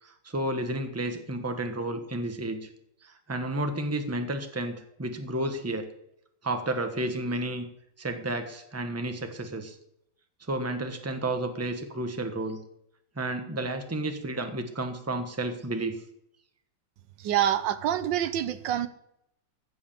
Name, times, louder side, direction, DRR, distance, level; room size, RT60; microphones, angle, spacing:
voice 1, 0.0-2.7 3.0-5.9 6.4-7.7 8.0-9.8 10.5-12.6 13.2-16.0 17.4-17.6, right 1 dB, 10° right, 6 dB, 1.1 m, -31 dB
voice 2, 17.2-18.9, right 11 dB, 85° right, 13 dB, 1.5 m, -26 dB
15.0 x 7.9 x 7.4 m, 0.79 s
omnidirectional pair, 2.0 m